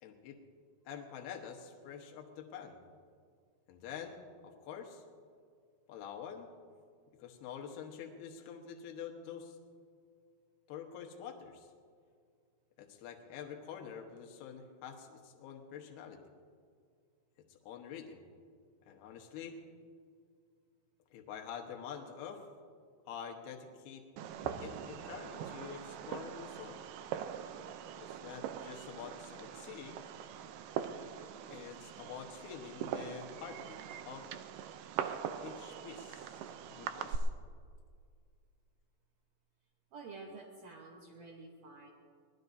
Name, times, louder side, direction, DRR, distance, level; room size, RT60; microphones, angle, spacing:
voice 1, 0.0-0.4 0.9-2.8 3.7-5.0 5.9-6.5 7.2-9.6 10.7-11.7 12.8-16.2 17.5-18.2 18.9-19.6 21.1-22.4 23.1-24.0 24.6-26.8 28.0-30.1 31.5-33.8 34.0-34.3 35.4-36.4 36.7-37.3, left 7 dB, 75° left, 3 dB, 3.1 m, -47 dB
Fireworks, 24.2-37.2, right 9 dB, 90° right, 1.9 m, -42 dB
voice 2, 39.9-41.9, right 3 dB, 70° right, -1 dB, 1.6 m, -50 dB
23.5 x 18.5 x 2.7 m, 2.1 s
omnidirectional pair, 4.7 m